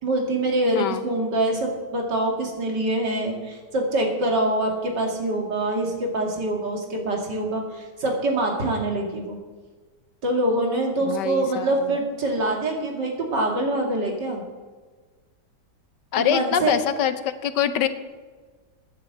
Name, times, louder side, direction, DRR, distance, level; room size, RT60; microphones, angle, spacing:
voice 1, 0.0-9.4 10.2-14.4 16.2-16.7, right 1 dB, 90° right, 1 dB, 3.0 m, -25 dB
voice 2, 11.1-11.7 16.1-17.9, left 9 dB, 85° left, 11 dB, 1.5 m, -24 dB
10.5 x 9.9 x 8.0 m, 1.4 s
omnidirectional pair, 1.8 m